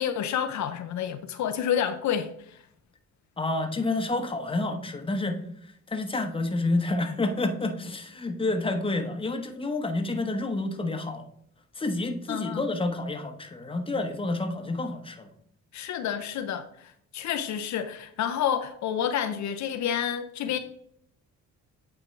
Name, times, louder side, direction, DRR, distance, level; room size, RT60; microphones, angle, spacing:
voice 1, 0.0-2.6 12.3-12.7 15.7-20.6, left 9 dB, 70° left, 0.6 m, -29 dB
voice 2, 3.4-11.2 11.7-15.3, left 2 dB, 20° left, 1.1 m, -29 dB
9.0 x 4.5 x 3.3 m
cardioid pair, 90°, 30 cm